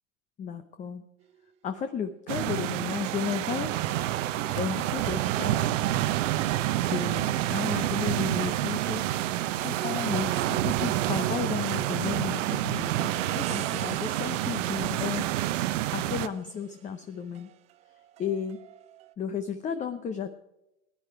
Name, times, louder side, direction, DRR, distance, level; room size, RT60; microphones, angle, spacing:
voice 1, 0.4-1.0 1.6-3.7 4.5-5.7 6.8-9.0 9.6-15.3 15.9-17.5 18.2-18.6 19.2-20.3, left 7 dB, 20° left, 8 dB, 0.7 m, -33 dB
sound 1, 1.2-1.5 2.4-19.1, right 11 dB, 15° right, 0.4 m, -43 dB
sound 2, 2.3-16.3, right 14 dB, 60° right, 0.9 m, -28 dB
17.0 x 10.0 x 4.6 m, 0.90 s
hypercardioid pair, 115°, 41 cm